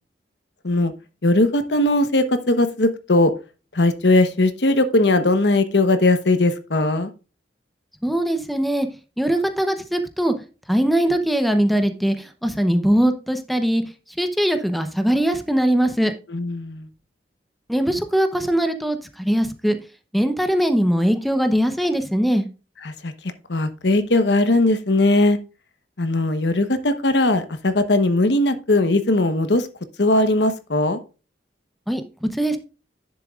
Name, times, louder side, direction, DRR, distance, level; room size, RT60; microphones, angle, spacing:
voice 1, 1.2-3.3 3.7-7.1 16.3-16.9 22.8-23.1 23.5-25.4 26.0-29.7 30.0-31.0, left 2 dB, 70° left, 9 dB, 1.1 m, -19 dB
voice 2, 8.0-8.9 9.2-10.3 10.7-13.8 14.2-16.1 17.7-19.8 20.1-22.5 31.9-32.6, right 1 dB, ahead, 7 dB, 0.8 m, -21 dB
10.5 x 7.5 x 2.4 m, 0.33 s
head